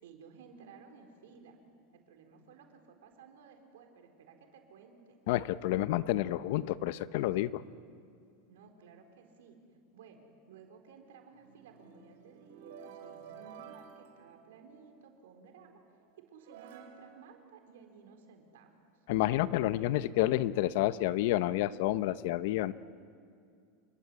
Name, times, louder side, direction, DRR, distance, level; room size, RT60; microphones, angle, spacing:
voice 1, 0.0-1.6 1.9-5.2 8.5-9.6 9.9-15.8 16.3-18.7, right 5 dB, 90° right, 4 dB, 4.3 m, -56 dB
voice 2, 5.3-7.6 19.1-22.7, left 15 dB, 55° left, 15 dB, 0.8 m, -29 dB
sound 1, 11.3-15.1 15.9-16.0 16.4-18.3, right 7 dB, 75° right, 4.5 m, -53 dB
28.5 x 22.0 x 8.8 m, 2.3 s
supercardioid pair, 170°, 0 cm